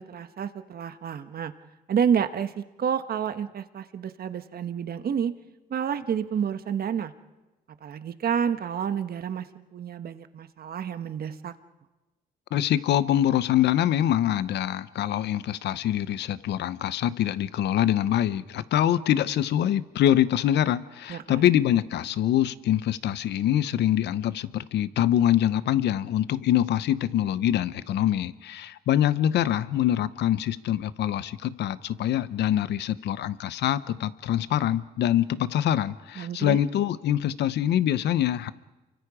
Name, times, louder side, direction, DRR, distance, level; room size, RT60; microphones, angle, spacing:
voice 1, 0.0-1.5 1.9-5.3 5.7-7.1 7.8-11.5 21.1-21.5 36.2-36.6, right 8 dB, 60° right, 10 dB, 1.3 m, -29 dB
voice 2, 12.5-38.5, left 11 dB, 80° left, 16 dB, 0.8 m, -24 dB
29.0 x 24.5 x 5.0 m, 1.1 s
cardioid pair, 75°, 18 cm